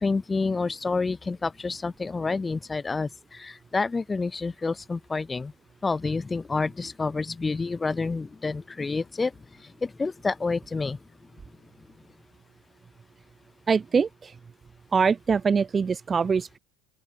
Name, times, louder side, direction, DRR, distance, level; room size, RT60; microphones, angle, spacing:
voice 1, 0.0-5.5 5.8-9.3 9.8-11.0, left 4 dB, 10° left, 1.3 m, -28 dB
voice 2, 13.7-14.3 14.9-16.6, right 5 dB, 15° right, 0.4 m, -23 dB
open air
cardioid pair, 160°, 0 cm